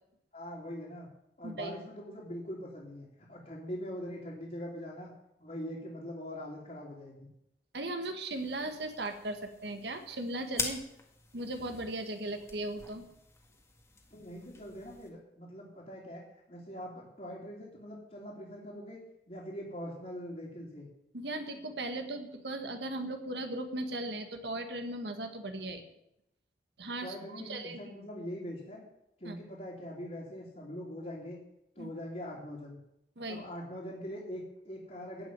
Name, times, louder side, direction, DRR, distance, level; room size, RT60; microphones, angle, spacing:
voice 1, 0.3-1.1 1.4-5.1 5.4-7.3 14.1-20.9 27.0-28.8 29.2-31.4 31.8-32.8 33.3-35.3, equal, 40° left, -6 dB, 3.0 m, -42 dB
voice 2, 7.7-10.8 11.3-13.0 21.1-25.8 26.8-27.8 29.2-29.3 31.8-31.9 33.2-33.4, right 2 dB, 80° right, 7 dB, 1.6 m, -37 dB
sound 1, 8.3-15.1, left 4 dB, 15° left, 1.8 m, -44 dB
15.5 x 6.1 x 9.7 m, 0.82 s
head